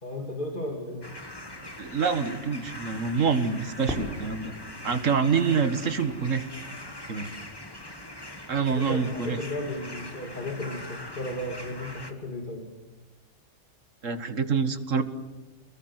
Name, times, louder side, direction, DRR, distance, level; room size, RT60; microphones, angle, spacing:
voice 1, 0.0-1.2 8.7-12.7, left 1 dB, 40° left, 1 dB, 2.9 m, -34 dB
sound 1, 1.0-12.1, left 1 dB, 20° left, 2.1 m, -42 dB
voice 2, 1.6-4.5 4.8-6.5 7.1-7.3 8.5-9.4 14.0-15.0, right 5 dB, 70° right, 9 dB, 2.1 m, -26 dB
Fireworks, 3.9-6.7, equal, ahead, 6.5 m, -39 dB
29.0 x 21.0 x 9.7 m, 1.1 s
omnidirectional pair, 1.4 m